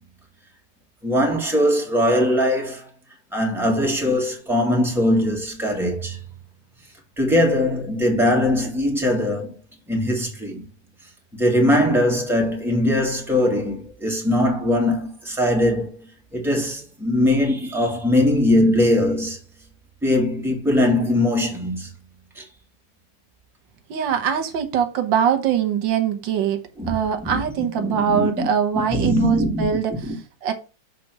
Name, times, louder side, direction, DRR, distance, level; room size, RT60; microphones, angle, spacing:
voice 1, 1.0-2.9 3.3-6.2 7.2-9.6 9.9-10.6 11.3-16.0 16.3-19.4 20.0-21.9 22.4-22.5 26.8-29.7 30.0-30.2, left 1 dB, ahead, 1.8 m, -21 dB
voice 2, 23.9-26.6 26.9-30.5, right 8 dB, 80° right, 1.7 m, -23 dB
6.7 x 3.6 x 6.0 m
omnidirectional pair, 2.0 m